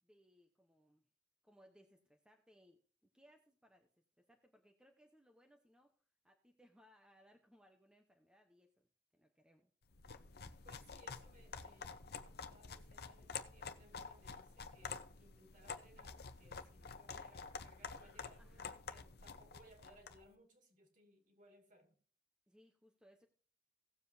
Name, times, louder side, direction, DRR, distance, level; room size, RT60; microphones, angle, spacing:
voice 1, 0.0-1.0 1.4-3.9 4.2-6.0 6.2-8.9 9.1-9.7 18.4-18.8 22.5-23.3, equal, 5° right, 2 dB, 0.9 m, -68 dB
sound 1, 9.9-20.2, left 5 dB, 55° left, 0.8 m, -49 dB
voice 2, 10.6-22.0, right 1 dB, 45° right, 4 dB, 2.5 m, -66 dB
18.0 x 7.4 x 2.8 m, 0.41 s
head